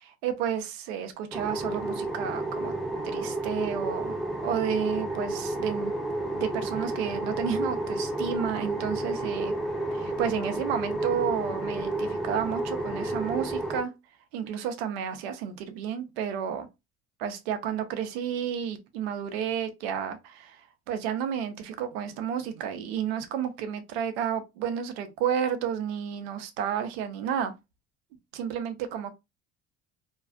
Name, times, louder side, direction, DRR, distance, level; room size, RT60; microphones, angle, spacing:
voice 1, 0.2-2.7 3.1-4.2 4.4-5.9 6.3-9.5 9.9-13.9 14.3-16.7 17.2-27.5 28.3-29.1, right 8 dB, 90° right, 0.5 m, -31 dB
sound 1, 1.3-13.8, right 2 dB, ahead, 0.7 m, -31 dB
2.6 x 2.3 x 2.3 m
supercardioid pair, 75°, 30 cm